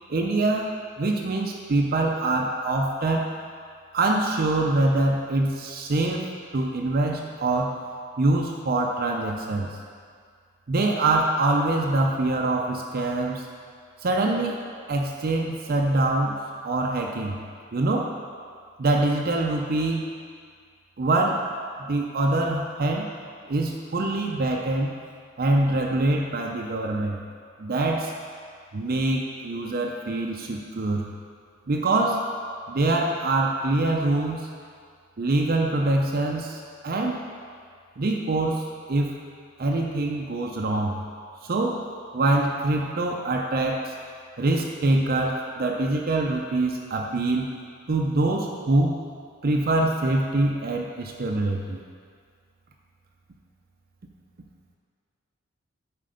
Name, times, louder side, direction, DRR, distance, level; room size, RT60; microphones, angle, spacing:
voice 1, 0.1-3.3 3.9-7.8 8.2-9.7 10.7-13.5 14.0-14.6 14.9-16.4 16.6-17.4 17.7-18.1 18.8-20.1 21.0-21.5 21.9-23.1 23.5-24.9 25.4-27.2 27.6-28.1 28.7-31.1 31.7-32.3 32.7-34.5 35.2-37.2 38.0-39.2 39.6-41.0 41.4-41.9 42.1-43.9 44.4-47.5 47.9-49.0 49.4-51.8, right 2 dB, 45° right, 1 dB, 0.5 m, -24 dB
7.6 x 4.4 x 5.1 m, 2.1 s
head